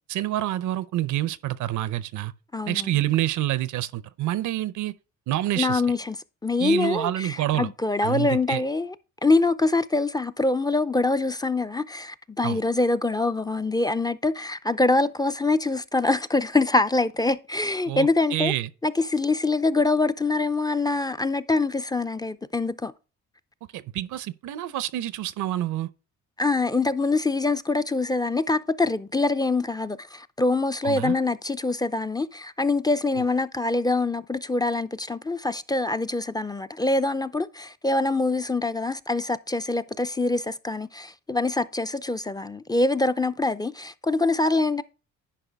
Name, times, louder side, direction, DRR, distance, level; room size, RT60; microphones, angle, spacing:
voice 1, 0.1-2.3 2.7-4.9 5.3-5.8 6.6-7.7 8.0-8.6 12.4-12.6 17.9-18.7 23.7-25.9 30.8-31.1 33.2-33.3, right 14 dB, 80° right, 0.6 m, -27 dB
voice 2, 2.5-3.0 5.6-6.2 6.4-8.9 9.2-18.5 18.8-22.9 26.4-44.8, left 3 dB, 15° left, 0.4 m, -24 dB
10.0 x 5.0 x 3.4 m
cardioid pair, 90°, 30 cm